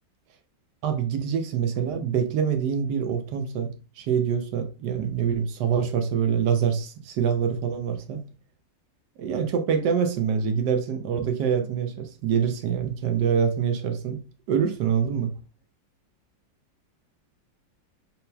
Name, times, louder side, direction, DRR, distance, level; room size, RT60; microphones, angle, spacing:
voice 1, 0.8-8.2 9.2-14.2 14.5-15.3, right 7 dB, 75° right, 1.2 m, -25 dB
4.2 x 3.6 x 2.2 m
omnidirectional pair, 2.0 m